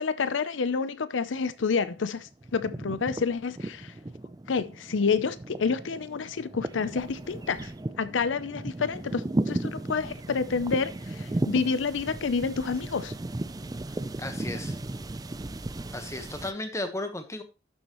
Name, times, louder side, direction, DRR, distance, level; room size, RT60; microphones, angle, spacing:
voice 1, 0.0-3.9 4.5-7.7 8.0-13.1, left 5 dB, 90° left, 0.6 m, -29 dB
sound 1, 1.4-2.0 2.3-16.5, right 2 dB, 20° right, 0.4 m, -35 dB
voice 2, 14.2-14.8 15.9-17.4, left 2 dB, 15° left, 1.2 m, -34 dB
11.5 x 7.1 x 3.1 m
head